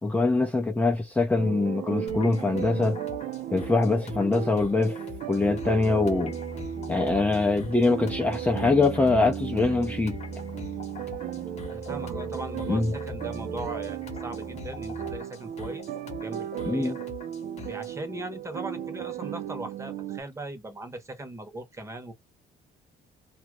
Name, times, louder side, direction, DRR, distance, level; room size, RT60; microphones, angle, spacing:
voice 1, 0.0-3.0 3.5-5.0 5.3-6.4 6.9-10.2 12.7-12.9 16.7-17.0, left 3 dB, 10° left, 0.6 m, -23 dB
sound 1, 1.4-20.2, right 10 dB, 55° right, 0.5 m, -36 dB
sound 2, 2.1-18.0, left 6 dB, 40° left, 1.1 m, -45 dB
sound 3, 5.4-15.2, left 1 dB, 65° left, 0.7 m, -42 dB
voice 2, 11.6-15.8 16.2-17.0 17.6-22.1, right 2 dB, 15° right, 1.0 m, -39 dB
2.8 x 2.4 x 3.0 m
cardioid pair, 110°, 17 cm